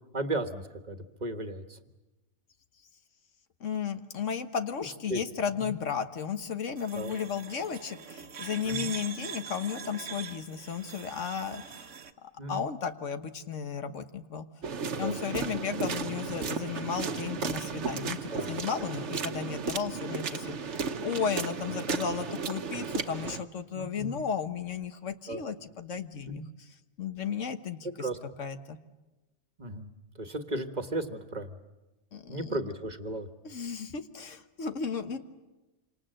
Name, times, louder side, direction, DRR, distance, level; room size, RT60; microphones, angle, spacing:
voice 1, 0.1-1.8 5.1-5.2 5.6-5.7 6.9-7.1 8.6-8.9 12.4-12.6 14.9-15.2 18.3-18.5 18.9-19.0 23.7-24.2 25.3-25.4 26.2-26.4 27.8-28.2 29.6-29.9 30.2-31.6 32.3-33.3, right 1 dB, 35° right, 7 dB, 1.6 m, -35 dB
voice 2, 3.6-11.9 12.5-14.5 15.0-26.4 27.0-28.1 28.4-28.8 32.1-32.6 33.4-35.2, left 6 dB, 85° left, 8 dB, 1.6 m, -34 dB
sound 1, 6.8-12.1, right 7 dB, 90° right, 1.6 m, -43 dB
sound 2, 14.6-23.4, right 5 dB, 70° right, 1.4 m, -34 dB
27.5 x 26.0 x 7.7 m, 1.1 s
omnidirectional pair, 1.2 m